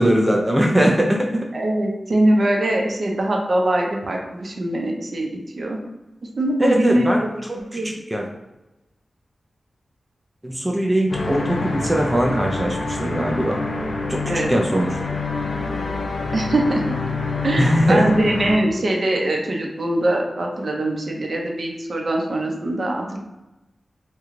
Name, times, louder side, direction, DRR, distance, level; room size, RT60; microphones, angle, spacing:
voice 1, 0.0-1.5 6.6-8.3 10.4-13.6 14.1-14.2 14.5-14.9 17.6-18.2, right 1 dB, 15° right, 0 dB, 0.4 m, -20 dB
voice 2, 1.5-5.3 5.6-5.8 6.4-7.1 7.7-7.9 14.3-14.5 16.3-17.0 17.4-23.2, right 1 dB, 55° right, 0 dB, 0.7 m, -22 dB
sound 1, 11.1-18.6, left 3 dB, 85° left, 0.5 m, -26 dB
3.1 x 2.3 x 3.7 m, 1.0 s
wide cardioid pair, 110°, 0 cm